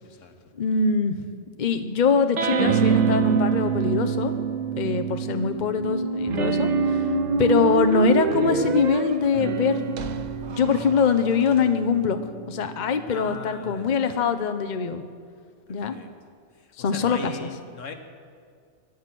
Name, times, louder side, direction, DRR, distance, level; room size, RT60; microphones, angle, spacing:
voice 1, 0.0-0.4 13.1-14.0 15.7-16.1 16.8-17.9, left 4 dB, 85° left, 6 dB, 1.6 m, -39 dB
voice 2, 0.6-1.3 1.6-4.4 4.8-7.1 7.4-10.2 10.5-12.2 12.5-15.0 15.7-16.0 16.8-17.5, left 5 dB, 40° left, 8 dB, 0.9 m, -23 dB
sound 1, 2.4-5.7 6.3-13.0, right 7 dB, 75° right, 1.2 m, -27 dB
sound 2, 5.7-11.6, right 4 dB, 45° right, 0.6 m, -28 dB
24.5 x 9.2 x 6.1 m, 2.2 s
omnidirectional pair, 1.3 m